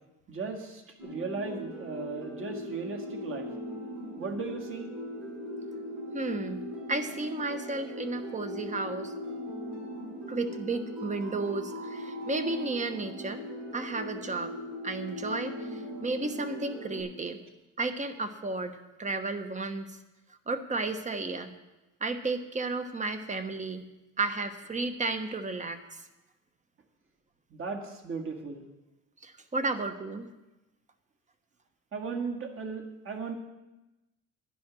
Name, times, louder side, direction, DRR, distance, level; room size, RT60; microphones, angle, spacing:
voice 1, 0.3-3.5 4.2-4.9 27.5-28.6 31.9-33.4, right 4 dB, 40° right, 3 dB, 1.9 m, -36 dB
sound 1, 1.0-17.0, left 1 dB, 90° right, 4.9 m, -39 dB
voice 2, 6.1-9.1 10.3-13.4 13.7-14.5 14.8-17.4 17.8-20.0 20.5-21.5 22.0-23.9 24.2-26.0 29.2-30.3, right 3 dB, 25° right, 8 dB, 1.0 m, -33 dB
10.5 x 10.5 x 6.2 m, 1.0 s
cardioid pair, 120°, 32 cm